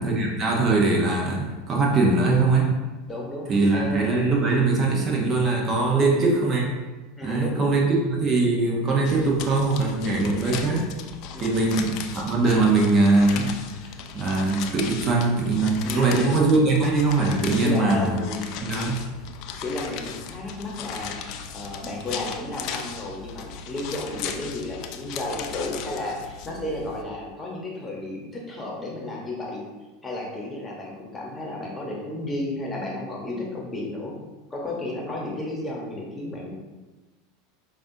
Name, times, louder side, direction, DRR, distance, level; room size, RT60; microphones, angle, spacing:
voice 1, 0.0-2.7 3.5-6.7 7.2-10.9 11.4-13.6 14.1-18.2 18.6-19.0, right 3 dB, 35° right, -1 dB, 0.8 m, -21 dB
voice 2, 2.1-2.4 3.1-4.1 6.0-6.3 7.2-7.8 11.3-11.8 15.8-16.4 17.6-18.5 19.6-29.6 30.0-34.1 34.5-36.5, left 1 dB, 20° left, -2 dB, 1.0 m, -33 dB
sound 1, 9.0-27.0, left 7 dB, 55° left, 0.3 m, -37 dB
5.2 x 2.5 x 2.6 m, 1.2 s
hypercardioid pair, 90°, 0 cm